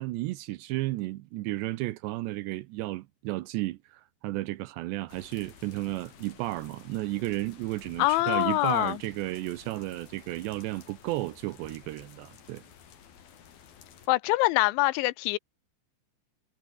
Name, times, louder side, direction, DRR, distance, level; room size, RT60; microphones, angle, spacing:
voice 1, 0.0-12.6, right 18 dB, 80° right, 2.6 m, -33 dB
sound 1, 5.1-14.1, left 8 dB, 50° left, 4.3 m, -53 dB
voice 2, 8.0-9.0 14.1-15.4, left 21 dB, 80° left, 2.8 m, -24 dB
omnidirectional pair, 5.8 m